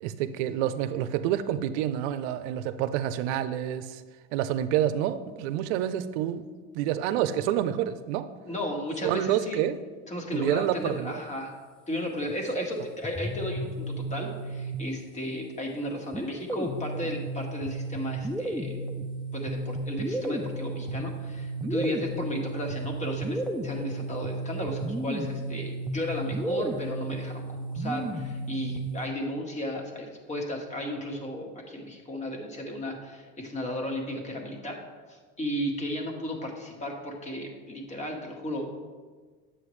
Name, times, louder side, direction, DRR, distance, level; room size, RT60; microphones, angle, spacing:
voice 1, 0.0-4.0 4.3-6.4 6.7-8.3 9.0-9.8 10.3-11.1 12.6-12.7 21.6-21.9, right 11 dB, 75° right, 12 dB, 0.6 m, -28 dB
voice 2, 8.4-9.6 10.1-11.5 11.9-18.9 19.3-34.8 35.1-38.8, left 1 dB, 20° left, 1 dB, 1.6 m, -34 dB
sound 1, 13.0-15.2 16.1-29.1, right 1 dB, 5° left, 0.5 m, -33 dB
9.7 x 7.8 x 3.2 m, 1.5 s
supercardioid pair, 115°, 34 cm